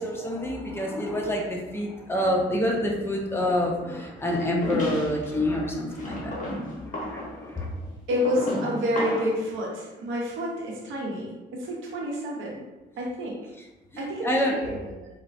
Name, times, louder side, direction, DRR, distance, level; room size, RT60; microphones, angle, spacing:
voice 1, 0.0-7.7 13.9-14.6, left 1 dB, 10° left, 0 dB, 0.6 m, -27 dB
sound 1, 4.3-5.3 6.0-9.4, left 1 dB, 40° left, 1.0 m, -32 dB
voice 2, 8.1-12.6 13.0-13.4 14.0-15.1, equal, 80° right, -3 dB, 0.8 m, -29 dB
4.2 x 2.1 x 2.5 m, 1.0 s
cardioid pair, 90°, 20 cm